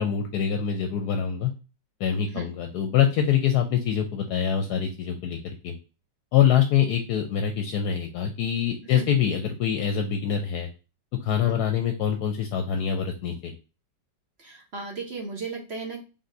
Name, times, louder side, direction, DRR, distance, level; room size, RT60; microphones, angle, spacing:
voice 1, 0.0-1.5 2.0-5.7 6.3-10.7 11.2-13.5, left 9 dB, 75° left, 5 dB, 1.0 m, -25 dB
voice 2, 14.4-16.0, right 4 dB, 45° right, 0 dB, 1.0 m, -35 dB
4.1 x 3.4 x 2.5 m, 0.31 s
omnidirectional pair, 1.9 m